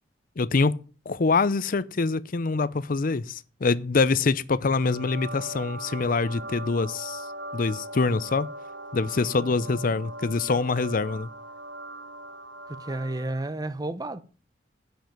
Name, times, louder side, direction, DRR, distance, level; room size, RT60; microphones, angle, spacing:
voice 1, 0.4-7.3 7.5-8.5 8.9-11.3, left 4 dB, 50° left, 0.6 m, -25 dB
sound 1, 4.7-13.5, right 1 dB, 85° right, 1.1 m, -40 dB
voice 2, 12.7-14.2, right 2 dB, 20° right, 0.7 m, -31 dB
10.5 x 5.4 x 7.5 m
head